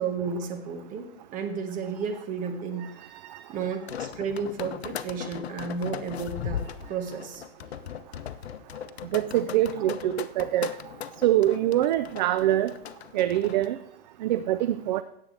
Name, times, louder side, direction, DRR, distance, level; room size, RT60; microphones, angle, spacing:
voice 1, 0.0-3.1 3.5-6.6 6.9-7.4, right 5 dB, 25° right, 5 dB, 1.6 m, -32 dB
sound 1, 3.6-13.7, left 9 dB, 80° left, 0.7 m, -38 dB
voice 2, 9.1-10.8 11.2-12.7 13.1-13.8 14.2-15.0, right 13 dB, 45° right, 13 dB, 0.5 m, -24 dB
17.0 x 7.6 x 3.3 m, 0.74 s
hypercardioid pair, 130°, 31 cm